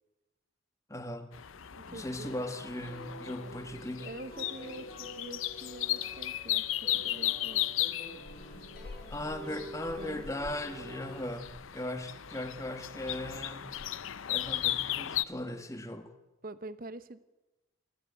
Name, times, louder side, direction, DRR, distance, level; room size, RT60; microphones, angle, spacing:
voice 1, 0.9-1.3 1.9-4.1 9.1-13.7 14.3-16.1, left 1 dB, 15° left, 8 dB, 1.5 m, -38 dB
sound 1, 1.3-15.2, left 13 dB, 75° left, 0.7 m, -36 dB
voice 2, 1.7-2.3 4.0-7.6 9.4-9.6 10.0-10.3 16.4-17.2, right 1 dB, 40° right, 13 dB, 0.9 m, -46 dB
sound 2, 2.7-11.2, right 1 dB, 50° left, 6.8 m, -48 dB
28.5 x 12.0 x 8.3 m, 1.1 s
head